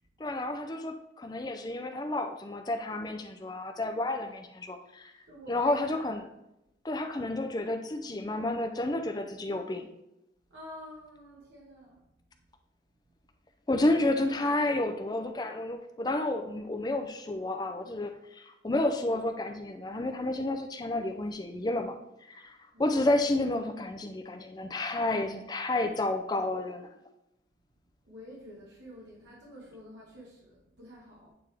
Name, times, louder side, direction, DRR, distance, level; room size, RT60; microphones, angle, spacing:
voice 1, 0.2-5.1 5.5-6.2 6.8-9.9 13.7-22.0 22.3-26.9, left 2 dB, 20° left, 6 dB, 0.4 m, -30 dB
voice 2, 5.3-6.3 10.5-12.1 22.7-22.8 28.0-31.3, equal, 80° right, -5 dB, 1.5 m, -48 dB
8.6 x 3.4 x 3.4 m, 0.85 s
head